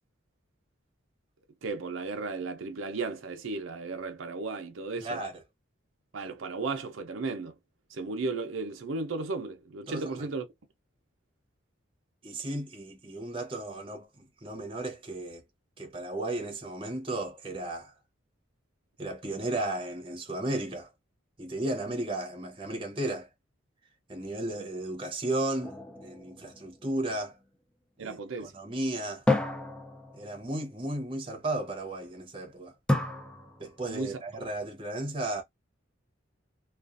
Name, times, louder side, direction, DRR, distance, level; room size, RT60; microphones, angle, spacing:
voice 1, 1.6-5.2 6.1-7.6 7.9-10.5 28.0-28.5 33.9-34.2, right 3 dB, 85° right, 0.6 m, -35 dB
voice 2, 5.0-5.3 9.9-10.3 12.2-15.4 15.8-17.9 19.0-20.9 21.4-23.3 24.1-25.8 26.0-27.4 28.0-29.2 30.1-32.7 33.6-35.4, right 1 dB, 25° right, 0.7 m, -34 dB
sound 1, 25.6-27.2 29.3-30.6 32.9-34.0, left 2 dB, 5° left, 0.4 m, -31 dB
2.4 x 2.3 x 2.4 m
head